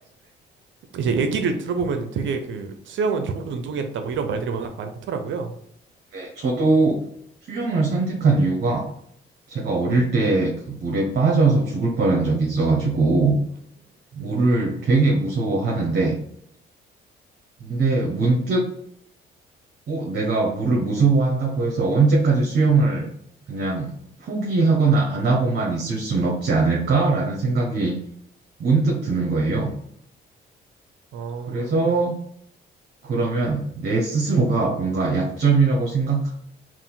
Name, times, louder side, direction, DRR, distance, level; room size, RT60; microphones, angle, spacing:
voice 1, 0.9-5.5 14.2-14.8 31.1-31.9, right 5 dB, 70° right, 6 dB, 0.7 m, -27 dB
voice 2, 6.1-7.0 7.5-8.8 9.5-13.4 14.1-16.2 17.6-18.6 19.9-23.1 23.5-23.9 24.2-27.9 28.6-29.7 31.5-32.2 33.0-36.3, right 3 dB, 55° right, -1 dB, 1.0 m, -21 dB
3.6 x 2.6 x 4.0 m, 0.69 s
cardioid pair, 90°, 20 cm